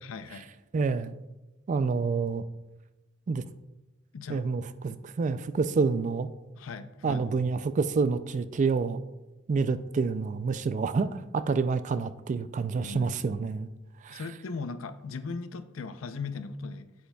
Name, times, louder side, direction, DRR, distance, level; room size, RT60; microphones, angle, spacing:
voice 1, 0.0-0.5 4.1-4.5 6.6-7.3 12.8-13.2 14.1-16.9, left 4 dB, 85° left, 12 dB, 0.5 m, -38 dB
voice 2, 0.7-1.1 1.7-2.4 3.3-3.4 4.3-6.3 7.0-9.0 9.5-13.7 14.0-14.2, right 4 dB, 40° right, 13 dB, 0.3 m, -28 dB
8.3 x 7.9 x 2.3 m, 1.1 s
head